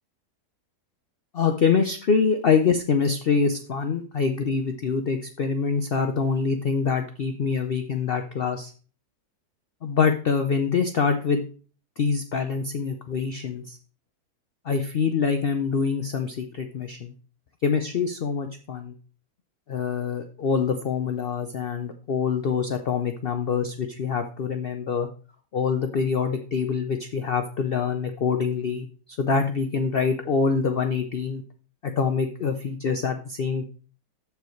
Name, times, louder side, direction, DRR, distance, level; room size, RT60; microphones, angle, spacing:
voice 1, 1.3-8.7 9.8-11.4 12.0-13.8 14.6-17.1 17.6-18.9 19.7-25.1 25.5-28.9 29.2-31.4 31.8-33.6, left 5 dB, 80° left, 7 dB, 0.5 m, -25 dB
13.5 x 4.8 x 3.1 m, 0.39 s
omnidirectional pair, 1.8 m